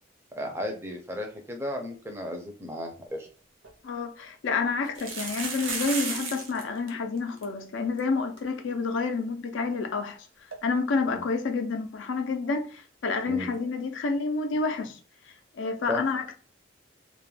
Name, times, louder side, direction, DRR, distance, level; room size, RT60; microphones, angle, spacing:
voice 1, 0.4-3.3 11.1-11.2 13.3-13.5 15.9-16.0, left 1 dB, 10° right, 0.4 m, -34 dB
sound 1, 3.3-3.4 3.6-3.7 4.9-6.6 6.9-7.0 7.2-7.4 8.0-8.1 8.4-8.5 10.5-10.6, right 4 dB, 80° right, 0.6 m, -33 dB
voice 2, 3.8-10.2 10.6-15.0 15.6-16.4, left 4 dB, 70° left, 0.4 m, -29 dB
2.2 x 2.1 x 3.1 m
head